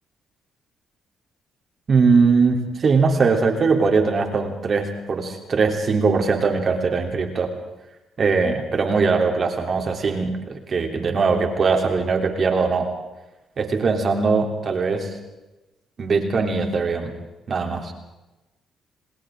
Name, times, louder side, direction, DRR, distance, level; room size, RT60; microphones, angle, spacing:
voice 1, 1.9-7.5 8.2-12.9 13.6-15.1 16.0-17.1 17.5-17.9, right 4 dB, 45° right, 3 dB, 3.4 m, -21 dB
29.0 x 28.0 x 3.8 m, 1.0 s
cardioid pair, 90°, 0 cm